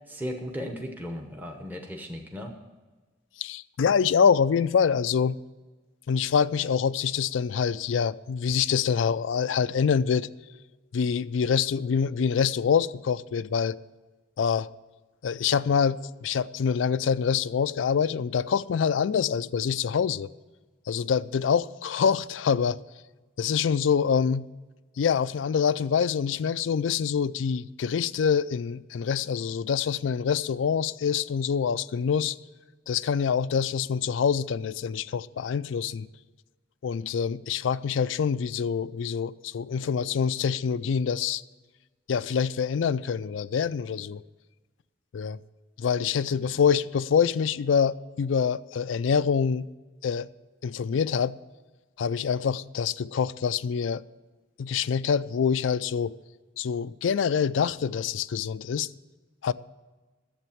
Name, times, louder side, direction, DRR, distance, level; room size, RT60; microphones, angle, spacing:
voice 1, 0.1-2.5, equal, 10° right, 1.0 m, -36 dB
voice 2, 3.4-5.4 6.1-10.3 10.9-13.8 14.4-14.7 15.2-20.3 20.9-22.8 23.4-24.5 25.0-32.4 32.9-36.1 36.8-41.4 42.1-44.2 45.1-45.4 45.8-49.7 50.0-50.3 50.6-51.4 52.0-54.0 54.6-56.1 56.6-58.9 59.4-59.5, left 6 dB, 80° left, 0.4 m, -25 dB
11.0 x 7.9 x 7.2 m
head